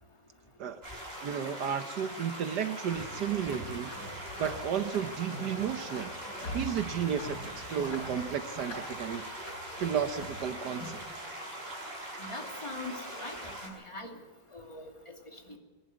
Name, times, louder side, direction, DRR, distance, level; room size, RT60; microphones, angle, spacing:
sound 1, 0.8-13.7, right 1 dB, 35° right, 6.5 m, -42 dB
voice 1, 1.2-3.9 4.4-6.1 6.5-9.3 9.8-11.0, right 8 dB, 70° right, 10 dB, 1.5 m, -33 dB
sound 2, 2.9-11.1, equal, 80° left, 6.5 m, -44 dB
voice 2, 12.2-14.2 14.5-15.6, left 2 dB, 15° left, 3 dB, 2.6 m, -43 dB
24.0 x 12.0 x 9.6 m, 1.3 s
omnidirectional pair, 1.9 m